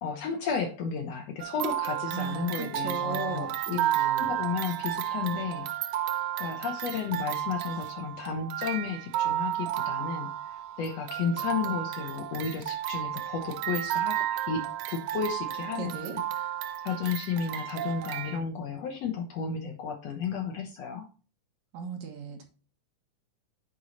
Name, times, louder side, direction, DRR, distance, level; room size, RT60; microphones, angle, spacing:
voice 1, 0.0-3.8 4.2-6.0 6.4-16.2 16.8-21.1, left 6 dB, 65° left, 4 dB, 1.8 m, -33 dB
sound 1, 1.4-18.4, right 12 dB, 90° right, 1.5 m, -32 dB
voice 2, 2.1-4.3 15.8-16.2 21.7-22.4, right 6 dB, 65° right, 3 dB, 2.4 m, -37 dB
8.1 x 4.6 x 4.0 m, 0.35 s
omnidirectional pair, 3.7 m